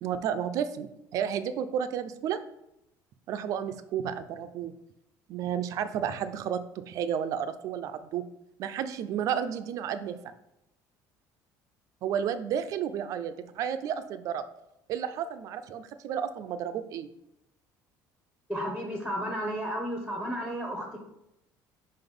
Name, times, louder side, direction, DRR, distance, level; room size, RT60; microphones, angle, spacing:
voice 1, 0.0-2.4 3.3-4.7 5.3-8.2 8.6-10.3 12.0-14.4 14.9-17.1, right 8 dB, 50° right, 11 dB, 0.4 m, -32 dB
voice 2, 18.5-21.0, equal, 5° left, 1 dB, 0.7 m, -33 dB
5.2 x 3.9 x 5.2 m, 0.84 s
cardioid pair, 170°, 8 cm